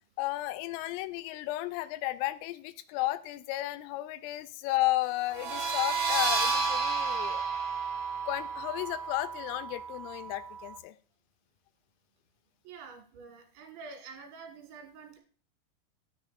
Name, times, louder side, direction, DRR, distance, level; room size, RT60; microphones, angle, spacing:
voice 1, 0.2-7.5 8.3-11.0, left 17 dB, 90° left, 12 dB, 3.2 m, -33 dB
sound 1, 5.3-10.7, right 4 dB, 85° right, 1.6 m, -32 dB
voice 2, 12.6-15.2, right 5 dB, 60° right, 4 dB, 3.0 m, -47 dB
10.5 x 6.8 x 2.4 m, 0.42 s
omnidirectional pair, 5.8 m